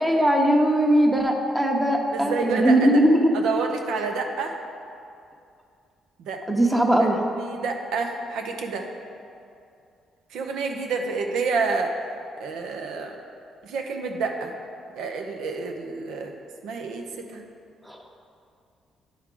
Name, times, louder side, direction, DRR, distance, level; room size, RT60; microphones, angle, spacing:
voice 1, 0.0-3.3 6.5-7.2 17.8-18.0, right 1 dB, 10° right, 1 dB, 0.9 m, -20 dB
voice 2, 2.1-3.0 3.3-4.5 6.2-6.4 7.0-7.1 7.4-8.9 10.3-12.0 12.4-13.2 13.6-14.5 15.0-16.3 16.6-17.4, right 4 dB, 85° right, 3 dB, 0.7 m, -28 dB
9.9 x 4.6 x 3.8 m, 2.5 s
cardioid pair, 90°, 0 cm